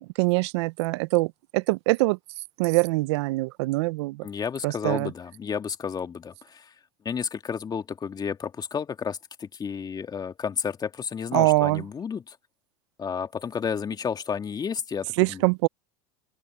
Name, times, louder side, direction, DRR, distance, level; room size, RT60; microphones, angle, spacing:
voice 1, 0.2-2.2 2.6-4.3 4.6-5.1 11.3-11.8 15.2-15.7, right 22 dB, 70° right, 0.7 m, -23 dB
voice 2, 4.2-6.7 7.0-12.4 13.0-15.7, left 6 dB, 25° left, 2.2 m, -32 dB
open air
hypercardioid pair, 95°, 15 cm